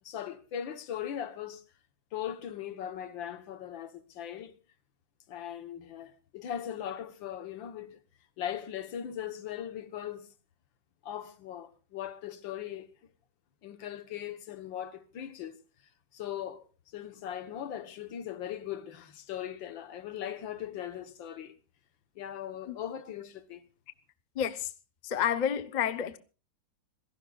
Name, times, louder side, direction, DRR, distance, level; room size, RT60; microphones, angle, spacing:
voice 1, 0.0-1.6 2.1-4.5 5.3-8.0 8.4-10.3 11.0-12.9 13.6-15.6 16.1-16.7 16.9-21.6 22.2-23.6, left 10 dB, 90° left, 1.8 m, -39 dB
voice 2, 24.3-24.7 25.0-26.2, left 9 dB, 45° left, 0.5 m, -30 dB
26.0 x 17.5 x 2.3 m
omnidirectional pair, 2.0 m